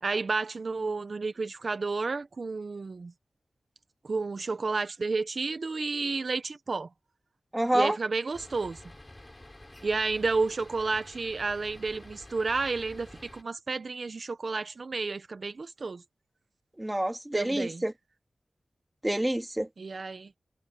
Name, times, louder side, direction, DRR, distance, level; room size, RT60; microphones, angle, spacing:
voice 1, 0.0-3.1 4.0-6.9 7.7-8.8 9.8-16.0 17.3-17.8 19.8-20.3, right 3 dB, 65° right, 1.0 m, -31 dB
voice 2, 7.5-8.0 16.8-17.9 19.0-19.7, right 1 dB, 15° right, 2.3 m, -27 dB
sound 1, 8.3-13.4, left 1 dB, 25° left, 8.0 m, -49 dB
cardioid pair, 50°, 0 cm